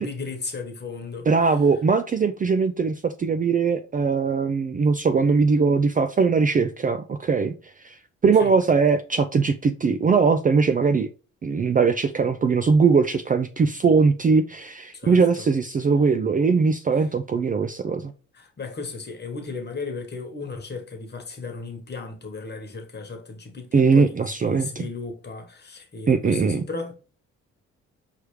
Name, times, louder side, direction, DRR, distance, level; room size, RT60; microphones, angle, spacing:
voice 1, 0.0-1.3 8.4-8.5 14.9-15.2 18.3-26.9, left 4 dB, 35° left, 1.3 m, -35 dB
voice 2, 1.3-7.5 7.8-7.9 8.2-11.1 11.4-18.1 23.7-24.8 26.1-26.6, right 5 dB, 30° right, 0.4 m, -20 dB
4.7 x 3.4 x 3.1 m
cardioid pair, 90°, 30 cm